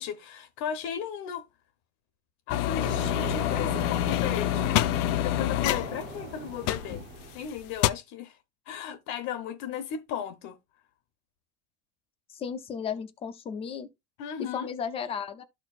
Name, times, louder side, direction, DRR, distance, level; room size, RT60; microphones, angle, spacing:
voice 1, 0.0-1.4 2.5-4.8 5.2-7.0 7.3-8.4 8.7-10.6 14.2-14.7, left 8 dB, 50° left, 0.8 m, -36 dB
sound 1, 2.5-7.3 7.6-7.9, left 14 dB, 85° left, 0.6 m, -27 dB
sound 2, 2.8-7.7, right 7 dB, 30° right, 0.6 m, -39 dB
voice 2, 12.3-13.9 14.4-15.4, left 7 dB, 15° left, 0.3 m, -34 dB
12.5 x 4.5 x 2.3 m
cardioid pair, 175°, 37 cm